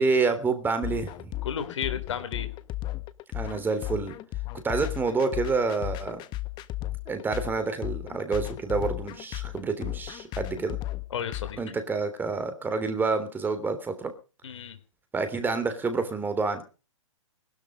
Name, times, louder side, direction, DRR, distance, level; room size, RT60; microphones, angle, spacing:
voice 1, 0.0-1.3 3.3-4.2 4.6-6.2 7.1-10.8 11.6-14.1 15.1-16.6, right 4 dB, 10° right, 9 dB, 3.3 m, -28 dB
sound 1, 0.8-11.5, left 17 dB, 25° left, 1.4 m, -35 dB
voice 2, 1.4-2.5 11.1-11.8 14.4-14.8, left 8 dB, 60° left, 9 dB, 3.5 m, -33 dB
21.0 x 12.5 x 5.2 m, 0.36 s
hypercardioid pair, 125°, 17 cm